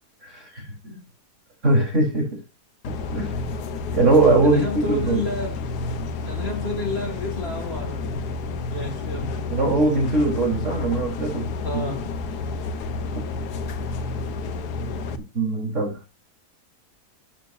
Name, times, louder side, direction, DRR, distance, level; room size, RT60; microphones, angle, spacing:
voice 1, 0.2-1.0 1.6-2.4 3.1-3.3 3.9-5.2 9.5-11.5 15.3-16.0, right 2 dB, 45° right, 4.1 m, -21 dB
sound 1, 2.8-15.2, left 3 dB, 80° left, 1.5 m, -30 dB
voice 2, 4.4-5.6 6.2-8.2 8.7-9.3 11.6-12.1, left 2 dB, 40° left, 2.4 m, -30 dB
13.0 x 7.5 x 2.6 m
omnidirectional pair, 1.7 m